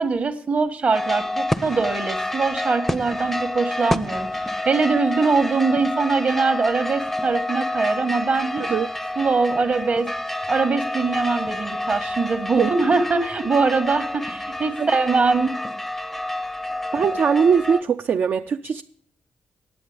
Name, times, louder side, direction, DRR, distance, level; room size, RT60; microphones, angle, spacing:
voice 1, 0.0-8.6 9.2-10.1 10.5-15.5, right 4 dB, 45° right, 1.3 m, -22 dB
sound 1, 0.9-17.8, left 1 dB, 5° left, 0.5 m, -28 dB
voice 2, 16.9-18.8, right 6 dB, 60° right, 0.4 m, -21 dB
9.2 x 7.8 x 8.4 m
cardioid pair, 95°, 4 cm